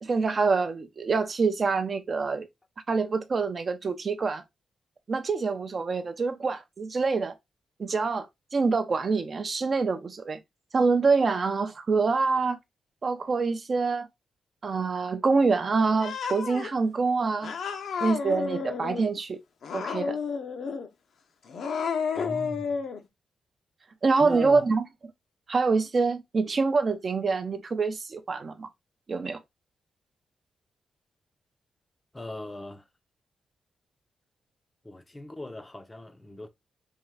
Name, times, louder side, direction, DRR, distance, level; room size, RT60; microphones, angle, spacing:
voice 1, 0.0-2.5 2.9-4.4 5.1-7.3 7.8-8.3 8.5-10.4 10.7-12.6 13.0-14.1 14.6-17.5 18.0-19.4 19.7-20.2 24.0-24.8 25.5-28.7 29.1-29.4, right 4 dB, 35° right, 0.5 m, -26 dB
Cat, 16.0-16.7 17.4-19.1 19.6-20.9 21.5-23.0, left 6 dB, 65° left, 0.7 m, -31 dB
voice 2, 22.2-22.7 24.2-24.7 32.1-32.8 34.8-36.5, left 1 dB, 15° left, 0.5 m, -39 dB
3.6 x 3.2 x 3.1 m
wide cardioid pair, 130°, 0 cm